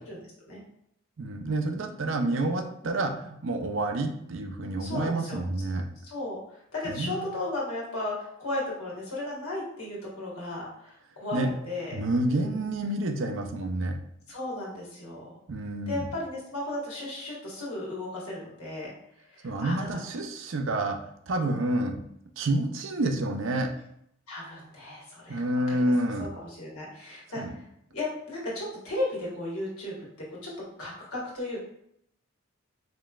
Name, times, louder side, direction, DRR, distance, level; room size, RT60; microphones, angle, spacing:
voice 1, 1.2-5.9 6.8-7.3 11.3-11.5 11.9-14.0 15.5-16.1 19.4-21.0 21.3-22.0 22.4-23.7 25.3-26.3 27.4-27.5, right 1 dB, 60° right, 5 dB, 0.5 m, -28 dB
voice 2, 4.8-5.4 6.0-6.4 6.7-12.6 14.3-15.3 15.9-18.9 19.3-20.0 21.4-21.6 24.3-25.4 25.7-25.9 26.2-27.6 27.9-30.5 30.8-31.6, left 2 dB, 85° left, -4 dB, 1.6 m, -35 dB
5.1 x 3.1 x 2.4 m, 0.72 s
head